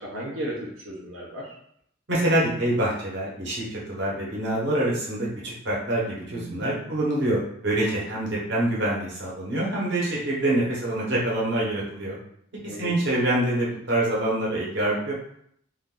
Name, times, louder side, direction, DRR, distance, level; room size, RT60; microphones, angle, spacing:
voice 1, 0.0-1.5 6.3-7.0 7.7-8.0 12.6-12.9, right 1 dB, 85° right, -5 dB, 0.7 m, -36 dB
voice 2, 2.1-12.2 12.6-15.1, right 1 dB, 55° right, -5 dB, 1.0 m, -26 dB
2.5 x 2.4 x 3.7 m, 0.69 s
head